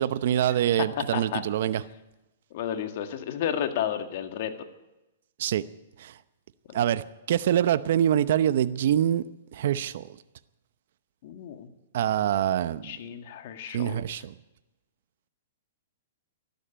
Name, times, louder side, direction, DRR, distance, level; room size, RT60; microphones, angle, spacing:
voice 1, 0.0-1.8 5.4-5.6 6.0-6.2 6.7-9.2 9.5-10.2 11.9-13.0 13.7-14.3, right 10 dB, 60° right, 14 dB, 0.7 m, -25 dB
voice 2, 1.1-1.4 2.5-4.5 6.7-6.8 11.2-11.7 12.8-14.0, left 9 dB, 55° left, 7 dB, 1.8 m, -32 dB
13.5 x 12.0 x 8.8 m, 0.97 s
hypercardioid pair, 135°, 0 cm